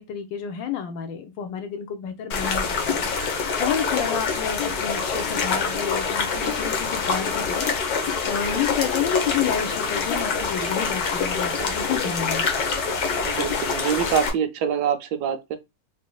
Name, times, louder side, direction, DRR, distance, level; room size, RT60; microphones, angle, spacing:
voice 1, 0.0-2.6 2.9-3.0 3.6-7.7 8.3-12.5, left 8 dB, 80° left, 1.5 m, -30 dB
sound 1, 2.3-14.3, left 5 dB, 60° left, 1.3 m, -25 dB
voice 2, 13.2-15.6, right 8 dB, 70° right, 1.1 m, -25 dB
4.0 x 3.5 x 2.2 m
omnidirectional pair, 2.0 m